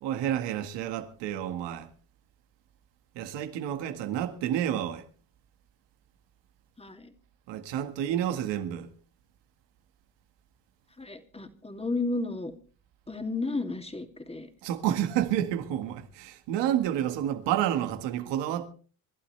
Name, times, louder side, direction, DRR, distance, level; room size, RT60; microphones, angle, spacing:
voice 1, 0.0-1.9 3.2-5.0 7.5-8.9 14.6-18.7, right 11 dB, 90° right, 1.8 m, -29 dB
voice 2, 6.8-7.1 11.0-12.5 13.1-14.5, left 3 dB, 15° left, 2.5 m, -33 dB
27.0 x 12.0 x 3.3 m
supercardioid pair, 80°, 42 cm